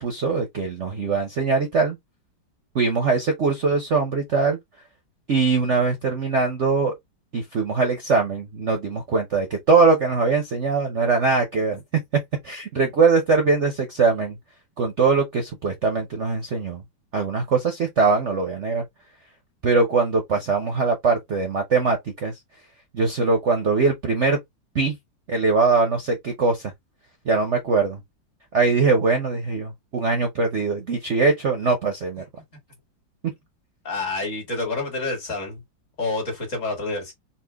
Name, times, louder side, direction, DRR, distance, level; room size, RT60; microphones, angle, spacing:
voice 1, 0.0-2.0 2.7-4.6 5.3-6.9 7.3-11.8 12.4-14.4 14.8-16.8 17.1-18.8 19.6-22.3 22.9-24.4 24.7-25.0 25.3-26.7 27.2-28.0 28.5-32.2, right 4 dB, 50° right, 0.9 m, -21 dB
voice 2, 33.8-35.6 36.0-37.1, left 3 dB, 40° left, 2.0 m, -28 dB
4.3 x 2.5 x 3.3 m
omnidirectional pair, 2.1 m